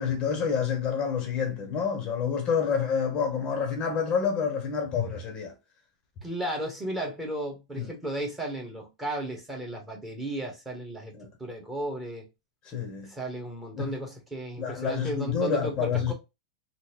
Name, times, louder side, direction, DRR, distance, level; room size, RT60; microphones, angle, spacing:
voice 1, 0.0-5.5 7.7-7.9 11.1-11.3 12.6-13.1 13.8-14.0 14.6-16.1, left 6 dB, 30° left, 0.8 m, -28 dB
voice 2, 6.2-11.1 11.4-12.3 13.1-16.1, right 1 dB, 10° right, 1.1 m, -34 dB
3.7 x 2.1 x 3.0 m
supercardioid pair, 140°, 3 cm